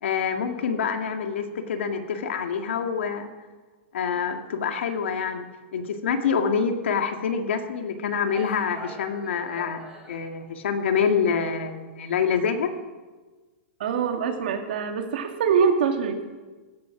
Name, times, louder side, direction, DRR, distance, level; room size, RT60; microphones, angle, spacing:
voice 1, 0.0-3.3 3.9-5.5 5.7-9.8 10.1-12.7, left 6 dB, 75° left, 5 dB, 2.0 m, -26 dB
sound 1, 7.9-8.0 8.2-10.2, right 2 dB, 10° right, 3.3 m, -44 dB
voice 2, 13.8-16.2, right 6 dB, 55° right, 4 dB, 2.3 m, -24 dB
17.0 x 14.0 x 6.1 m, 1.3 s
supercardioid pair, 180°, 6 cm